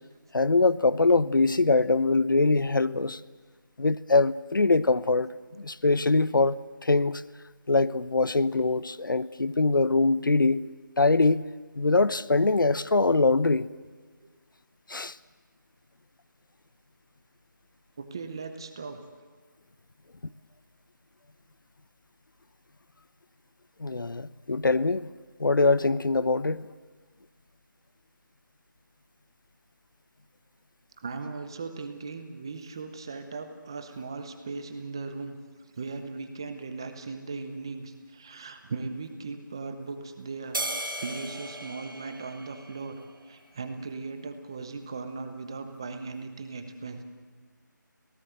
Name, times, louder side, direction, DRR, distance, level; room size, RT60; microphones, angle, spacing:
voice 1, 0.3-3.2 3.8-6.6 6.8-7.2 7.7-10.6 11.0-11.4 11.8-13.7 14.9-15.1 23.8-25.1 25.4-26.7, left 3 dB, 75° left, 0.9 m, -23 dB
voice 2, 18.0-19.0 31.0-35.4 35.7-40.6 41.0-43.0 43.3-47.0, right 4 dB, 15° right, 0.8 m, -38 dB
sound 1, 40.5-43.2, right 1 dB, 75° right, 1.7 m, -36 dB
28.0 x 17.5 x 7.8 m
figure-of-eight pair, 175°, 11 cm